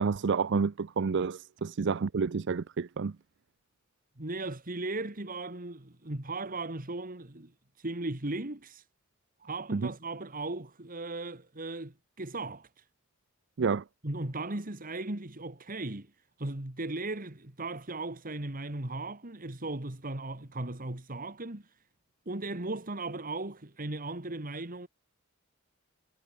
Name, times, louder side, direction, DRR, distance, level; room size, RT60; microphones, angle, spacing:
voice 1, 0.0-3.1 9.7-9.8 13.6-13.8, right 5 dB, 60° right, 0.5 m, -29 dB
voice 2, 4.2-7.5 7.8-8.8 9.4-12.8 14.0-16.1 16.4-21.6 22.3-24.9, right 2 dB, 45° right, 2.3 m, -37 dB
head